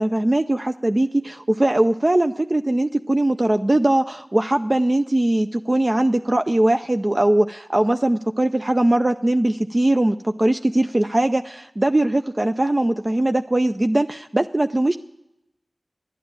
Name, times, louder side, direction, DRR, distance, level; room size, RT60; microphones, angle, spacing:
voice 1, 0.0-15.0, right 1 dB, 35° right, 7 dB, 0.4 m, -20 dB
11.5 x 9.3 x 8.7 m, 0.89 s
wide cardioid pair, 45°, 0 cm